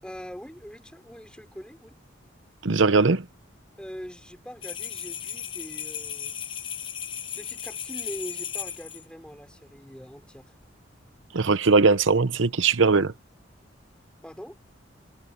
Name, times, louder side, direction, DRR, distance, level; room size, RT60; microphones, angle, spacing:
voice 1, 0.0-1.9 3.8-6.3 7.3-10.5 14.2-14.6, equal, 5° left, 3.7 m, -42 dB
voice 2, 2.6-3.3 11.3-13.1, right 4 dB, 85° right, 0.9 m, -20 dB
sound 1, 4.6-9.0, left 8 dB, 25° left, 0.7 m, -35 dB
head